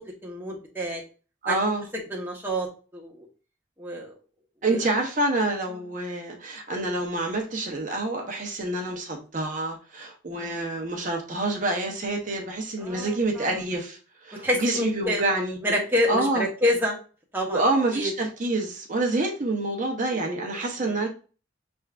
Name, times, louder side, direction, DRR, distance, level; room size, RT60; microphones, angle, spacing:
voice 1, 0.2-1.0 1.5-1.6 2.1-2.7 2.9-3.3 3.8-4.1 4.7-4.8 5.7-5.9 10.3-10.6 12.8-13.5 14.4-15.2 15.6-16.9 17.3-17.6 17.9-18.1 20.8-21.0, equal, 10° right, 0.9 m, -27 dB
voice 2, 1.4-1.9 4.6-14.0 14.2-15.6 16.1-16.4 17.4-21.1, right 2 dB, 40° right, 0.8 m, -27 dB
6.1 x 3.4 x 2.4 m
head